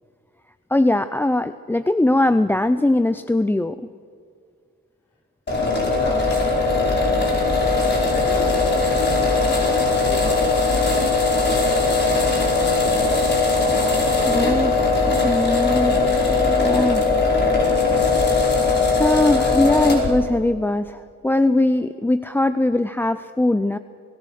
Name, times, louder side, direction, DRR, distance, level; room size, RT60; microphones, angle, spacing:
voice 1, 0.7-3.8 14.3-17.1 19.0-23.8, left 2 dB, 5° left, 12 dB, 0.5 m, -21 dB
voice 2, 5.5-6.3 6.6-7.0 7.9-10.6, left 2 dB, 70° left, 0 dB, 5.2 m, -33 dB
sound 1, 5.5-20.1, left 3 dB, 35° left, 5.0 m, -19 dB
27.0 x 17.5 x 6.4 m, 2.2 s
cardioid pair, 90°, 30 cm